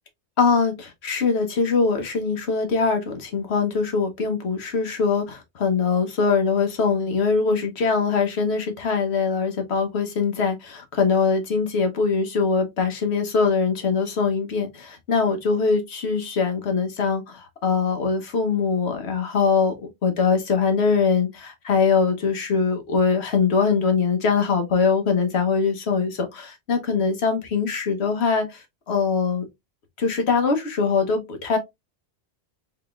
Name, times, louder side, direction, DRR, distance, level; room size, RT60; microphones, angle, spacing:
voice 1, 0.4-29.4 30.0-31.6, left 5 dB, 75° left, 1.2 m, -22 dB
3.7 x 3.5 x 2.3 m
omnidirectional pair, 1.1 m